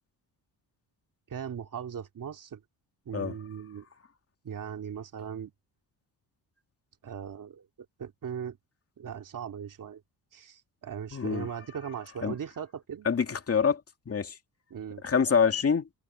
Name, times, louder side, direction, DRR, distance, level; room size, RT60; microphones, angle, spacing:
voice 1, 1.3-2.6 3.1-3.8 4.4-5.5 7.0-7.7 8.0-8.6 9.0-10.0 10.3-13.1 14.7-15.0, right 8 dB, 55° right, 2.9 m, -38 dB
voice 2, 11.1-11.5 12.2-12.3 13.1-13.8 14.1-14.3 15.0-15.9, left 6 dB, 35° left, 2.3 m, -25 dB
cardioid pair, 105°, 38 cm